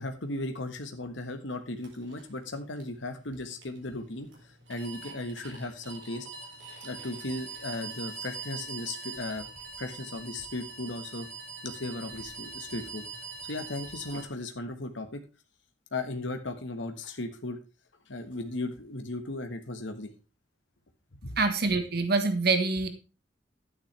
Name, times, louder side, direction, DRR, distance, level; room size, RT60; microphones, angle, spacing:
voice 1, 0.0-6.3 6.8-9.5 9.8-11.3 11.6-13.1 13.4-15.2 15.9-17.6 18.1-20.1 21.2-21.4, left 2 dB, 75° left, 6 dB, 1.4 m, -36 dB
Short circuit, 1.8-14.2, right 4 dB, 75° right, 4.2 m, -43 dB
voice 2, 21.4-22.9, right 3 dB, 55° right, 8 dB, 1.4 m, -25 dB
11.5 x 9.6 x 3.3 m, 0.29 s
head